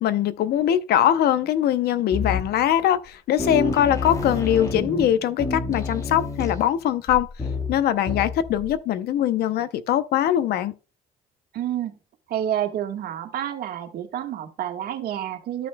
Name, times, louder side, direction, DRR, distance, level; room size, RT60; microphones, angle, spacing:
voice 1, 0.0-7.3 7.7-10.7, left 11 dB, 70° left, 0.7 m, -22 dB
sound 1, 2.1-2.7 3.1-3.2 3.4-8.7, left 3 dB, 20° left, 1.6 m, -29 dB
voice 2, 11.5-11.9 12.3-15.7, right 11 dB, 65° right, 1.5 m, -29 dB
13.5 x 6.1 x 2.3 m
cardioid pair, 110°, 17 cm